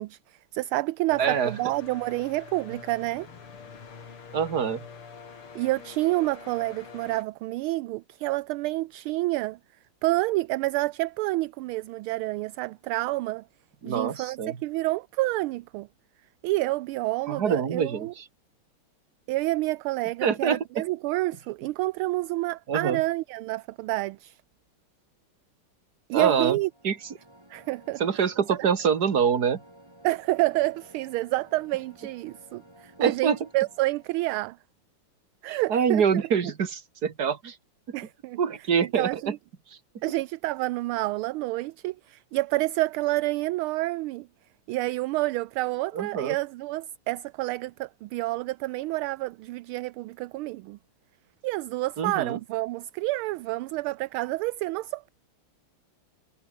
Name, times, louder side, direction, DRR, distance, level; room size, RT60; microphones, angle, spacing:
voice 1, 0.0-3.3 5.5-9.6 10.0-13.4 13.8-15.9 16.4-18.1 19.3-24.4 26.1-26.7 27.5-28.0 30.0-34.6 35.4-36.2 37.9-38.4 38.8-39.4 40.0-44.3 44.7-50.8 51.4-55.1, right 19 dB, 80° right, 1.4 m, -28 dB
sound 1, 1.1-7.2, left 5 dB, 75° left, 3.8 m, -45 dB
voice 2, 1.2-1.5 4.3-4.8 13.8-14.6 17.3-18.3 20.2-20.6 22.7-23.0 26.1-26.6 26.8-27.0 28.0-29.6 33.0-33.4 35.5-37.6 37.9-38.0 38.4-39.3 45.9-46.3 52.0-52.4, right 7 dB, 45° right, 2.3 m, -25 dB
sound 2, 26.6-34.4, right 1 dB, 10° right, 5.7 m, -54 dB
omnidirectional pair, 2.4 m